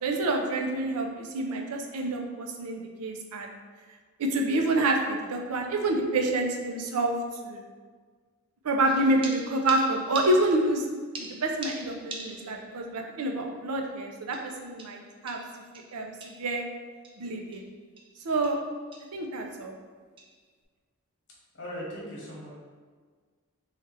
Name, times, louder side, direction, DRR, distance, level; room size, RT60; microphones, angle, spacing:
voice 1, 0.0-3.5 4.2-7.1 7.4-7.6 8.6-10.9 11.2-15.4 15.9-16.6 17.2-17.6 18.2-18.6 19.1-19.7, right 2 dB, 80° right, 2 dB, 0.5 m, -28 dB
sound 1, 8.8-10.8 11.1-12.7 13.1-13.2 14.3-16.5 17.0-17.2 17.5-17.7 18.0-18.2 18.4-18.7 18.9-19.2 20.2-20.4, right 2 dB, 25° right, 0.4 m, -43 dB
voice 2, 21.5-22.5, equal, 55° left, -4 dB, 1.1 m, -38 dB
3.3 x 2.4 x 4.3 m, 1.5 s
head